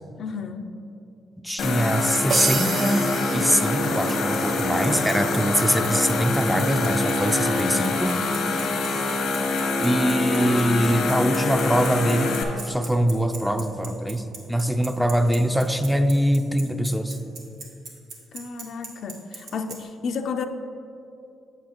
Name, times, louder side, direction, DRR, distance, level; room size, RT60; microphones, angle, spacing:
voice 1, 0.2-0.7 18.3-20.5, left 5 dB, 65° left, 6 dB, 0.5 m, -32 dB
voice 2, 1.4-8.2 9.8-12.3 12.6-17.2, equal, ahead, 7 dB, 0.4 m, -23 dB
sound 1, 1.6-12.4, left 3 dB, 80° left, 1.0 m, -25 dB
sound 2, 2.3-4.4, right 5 dB, 55° right, 0.4 m, -29 dB
Bicycle, 3.8-19.8, right 4 dB, 90° right, 1.2 m, -38 dB
8.3 x 7.6 x 3.0 m, 2.7 s
cardioid pair, 90°, 0 cm